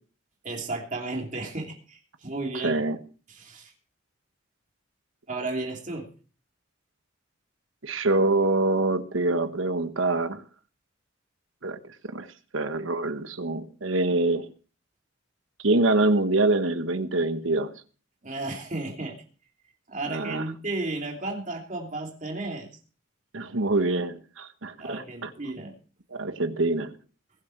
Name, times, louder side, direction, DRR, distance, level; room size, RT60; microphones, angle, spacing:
voice 1, 0.4-2.8 3.3-3.7 5.3-6.1 18.2-19.2 19.9-22.7 24.8-25.7, right 2 dB, 40° right, 3.0 m, -33 dB
voice 2, 2.6-3.0 7.8-10.4 11.6-11.8 12.1-12.3 12.5-14.5 15.6-17.7 20.1-20.4 23.3-25.3 26.1-26.9, right 2 dB, 85° right, 1.3 m, -25 dB
21.0 x 7.5 x 4.6 m
head